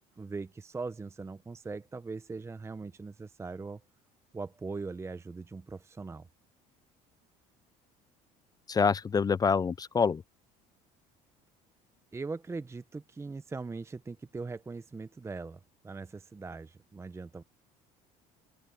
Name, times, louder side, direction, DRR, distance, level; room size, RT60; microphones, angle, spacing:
voice 1, 0.2-3.8 4.3-6.3 12.1-17.4, right 4 dB, 15° right, 0.8 m, -40 dB
voice 2, 8.7-10.2, left 5 dB, 25° left, 0.4 m, -26 dB
open air
supercardioid pair, 100°, 17 cm